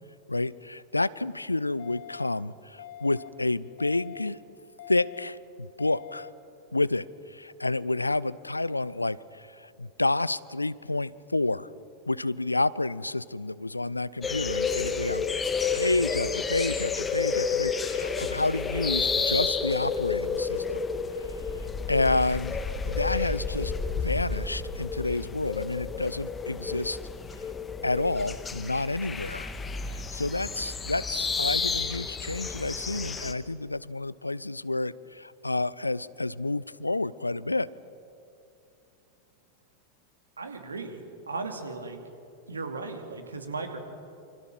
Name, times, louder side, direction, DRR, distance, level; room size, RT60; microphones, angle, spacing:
voice 1, 0.3-4.4 4.9-6.3 6.7-11.7 12.1-15.3 15.7-20.8 21.9-22.6 22.8-27.0 27.8-29.5 29.9-37.7, left 2 dB, 85° left, 20 dB, 0.5 m, -29 dB
sound 1, 1.8-2.3 2.8-3.3 3.8-4.3 4.8-5.3 5.8-6.3, left 10 dB, 55° left, 1.6 m, -44 dB
sound 2, 14.2-33.3, left 5 dB, 15° left, 1.7 m, -31 dB
voice 2, 40.4-42.1 42.5-43.8, right 3 dB, 75° right, 5 dB, 2.5 m, -36 dB
28.0 x 25.5 x 6.1 m, 2.7 s
figure-of-eight pair, 90°, 0 cm